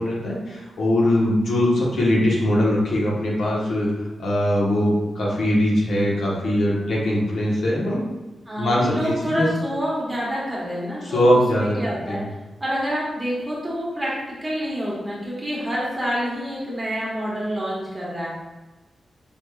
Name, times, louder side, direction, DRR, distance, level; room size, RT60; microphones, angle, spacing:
voice 1, 0.0-3.9 4.2-8.0 8.6-9.5 11.0-11.8 12.1-12.3, left 1 dB, 70° left, -4 dB, 1.1 m, -21 dB
voice 2, 8.5-12.2 12.6-14.1 14.4-18.3, equal, 15° right, -6 dB, 1.2 m, -27 dB
5.0 x 3.4 x 2.3 m, 1.1 s
wide cardioid pair, 180°, 0 cm